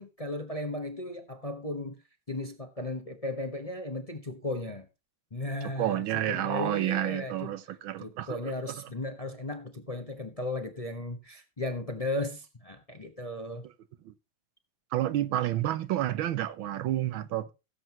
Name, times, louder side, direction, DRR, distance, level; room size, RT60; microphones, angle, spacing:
voice 1, 0.0-2.0 2.3-4.9 5.3-7.5 8.0-13.6, left 2 dB, 25° left, 0.9 m, -36 dB
voice 2, 5.8-8.9 13.6-13.7 14.0-14.1 14.9-17.5, right 13 dB, 75° right, 1.6 m, -30 dB
17.0 x 7.8 x 3.0 m
omnidirectional pair, 2.2 m